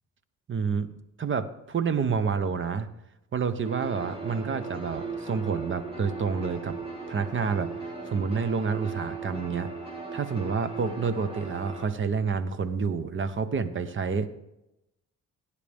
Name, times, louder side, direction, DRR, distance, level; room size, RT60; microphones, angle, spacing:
voice 1, 0.5-0.9 1.2-2.9 3.3-6.8 7.1-7.8 8.1-9.7 10.1-14.3, right 5 dB, 40° right, 13 dB, 1.0 m, -28 dB
sound 1, 3.6-11.9, right 4 dB, 20° right, 2.5 m, -37 dB
18.0 x 10.0 x 3.5 m, 0.89 s
cardioid pair, 90°, 31 cm